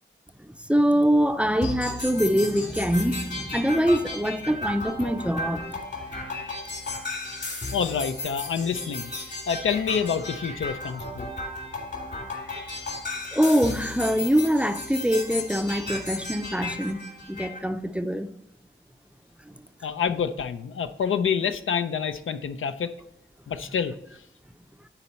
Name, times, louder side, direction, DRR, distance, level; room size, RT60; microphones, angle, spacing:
voice 1, 0.7-5.7 13.3-17.0 17.3-18.3, equal, 5° right, 0.5 m, -24 dB
sound 1, 1.6-17.6, left 2 dB, 60° left, 2.6 m, -35 dB
voice 2, 7.7-11.3 19.8-22.9 23.5-23.9, left 7 dB, 85° left, 0.5 m, -27 dB
9.9 x 4.1 x 4.2 m
wide cardioid pair, 65°, 20 cm